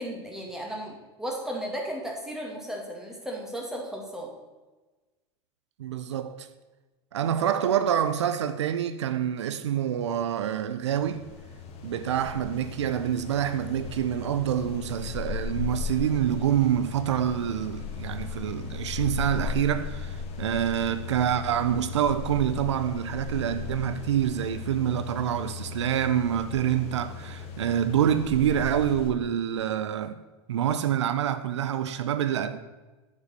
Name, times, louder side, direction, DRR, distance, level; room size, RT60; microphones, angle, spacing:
voice 1, 0.0-4.3, equal, 5° right, 2.6 m, -35 dB
voice 2, 5.8-6.5 7.1-11.2 11.8-30.2 30.5-32.6, right 10 dB, 85° right, 0.5 m, -26 dB
sound 1, 10.8-29.1, left 5 dB, 45° left, 1.8 m, -37 dB
8.2 x 5.2 x 6.7 m
hypercardioid pair, 90°, 14 cm